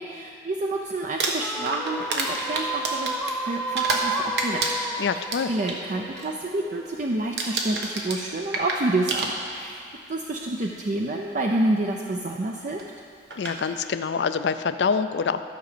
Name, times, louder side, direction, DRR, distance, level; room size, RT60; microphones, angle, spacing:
voice 1, 0.0-3.1 3.4-4.6 4.9-5.2 5.5-9.8 10.1-12.8, right 2 dB, 45° right, 1 dB, 0.5 m, -28 dB
Crumpling crinkling, 1.0-4.1 4.4-5.8 6.2-6.5 6.7-7.1 7.4-9.8 10.7-10.8 12.8-12.9 13.3-13.6, right 3 dB, 70° right, 1.2 m, -29 dB
sound 1, 1.4-6.8, right 2 dB, 5° left, 0.4 m, -32 dB
voice 2, 5.0-5.5 13.4-15.4, left 5 dB, 75° left, 11 dB, 0.4 m, -25 dB
12.5 x 5.1 x 6.7 m, 2.3 s
head